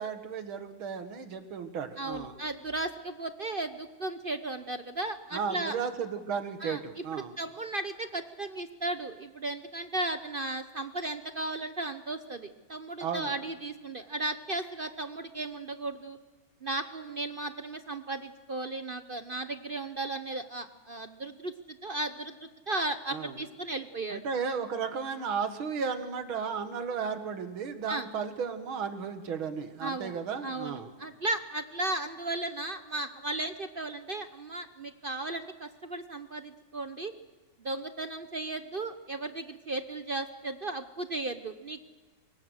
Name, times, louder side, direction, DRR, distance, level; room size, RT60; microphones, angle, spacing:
voice 1, 0.0-2.4 5.3-7.3 13.0-13.3 23.1-23.4 24.1-30.9, right 6 dB, 80° right, 9 dB, 2.4 m, -34 dB
voice 2, 2.0-5.8 6.6-16.2 16.6-24.2 27.9-28.1 29.8-30.2 30.4-37.1 37.6-41.8, right 2 dB, 50° right, 9 dB, 0.6 m, -35 dB
25.0 x 22.0 x 6.5 m, 1.3 s
omnidirectional pair, 2.2 m